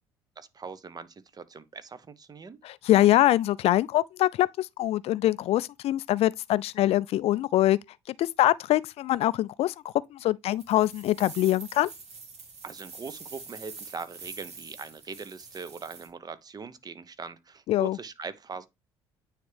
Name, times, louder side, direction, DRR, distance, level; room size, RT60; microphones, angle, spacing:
voice 1, 0.4-2.6 12.6-18.7, right 5 dB, 30° right, 0.8 m, -41 dB
voice 2, 2.6-7.8 8.2-11.9 17.7-18.0, left 14 dB, 50° left, 0.4 m, -24 dB
sound 1, 10.5-16.1, right 4 dB, 55° right, 2.0 m, -46 dB
9.3 x 3.3 x 3.3 m
figure-of-eight pair, 55°, 13 cm